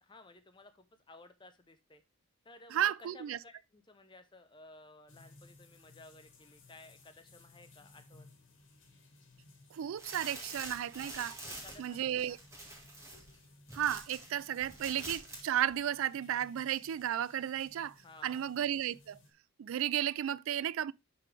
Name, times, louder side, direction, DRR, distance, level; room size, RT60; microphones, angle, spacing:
voice 1, 0.0-2.0 2.4-8.3 11.4-12.4 18.0-18.4, left 2 dB, 20° left, 0.7 m, -56 dB
voice 2, 2.7-3.4 9.7-11.4 11.8-12.4 13.7-17.9 18.2-19.2 19.6-20.9, right 10 dB, 70° right, 0.3 m, -33 dB
sound 1, 5.1-19.3, left 2 dB, 60° left, 1.6 m, -60 dB
sound 2, 10.0-14.3 14.6-15.4 15.7-15.8, right 1 dB, 15° right, 1.8 m, -46 dB
10.5 x 3.9 x 3.3 m
head